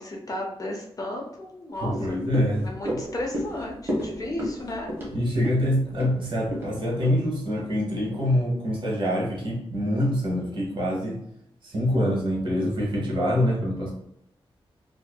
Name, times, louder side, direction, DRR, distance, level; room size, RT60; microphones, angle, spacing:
voice 1, 0.0-2.2 2.5-4.9, left 1 dB, 35° left, 0 dB, 0.5 m, -34 dB
sound 1, 1.8-8.3 8.6-8.7, equal, 20° right, 0.9 m, -34 dB
voice 2, 1.8-3.0 5.1-11.2 11.6-13.9, equal, 55° right, -3 dB, 0.9 m, -25 dB
2.6 x 2.5 x 2.2 m, 0.78 s
wide cardioid pair, 130°, 10 cm